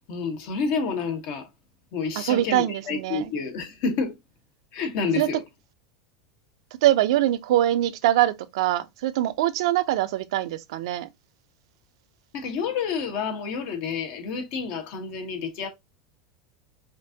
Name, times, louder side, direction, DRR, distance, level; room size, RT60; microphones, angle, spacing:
voice 1, 0.1-1.5 1.9-4.1 4.7-5.4 12.3-15.7, left 5 dB, 60° left, 1.3 m, -29 dB
voice 2, 2.2-3.3 5.2-5.3 6.8-11.1, right 13 dB, 75° right, 0.5 m, -23 dB
5.1 x 2.6 x 2.7 m
supercardioid pair, 125°, 3 cm